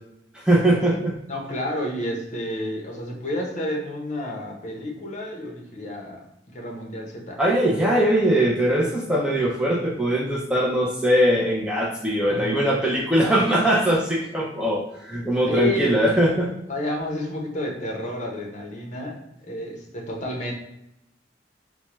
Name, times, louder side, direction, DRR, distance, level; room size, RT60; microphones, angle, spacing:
voice 1, 0.3-1.2 7.4-16.5, right 1 dB, 5° right, -3 dB, 0.4 m, -21 dB
voice 2, 1.3-6.2 6.5-7.4 12.3-12.5 15.5-16.0 16.7-19.2 19.4-20.5, left 1 dB, 40° left, -1 dB, 0.8 m, -30 dB
4.4 x 2.1 x 3.0 m, 0.83 s
head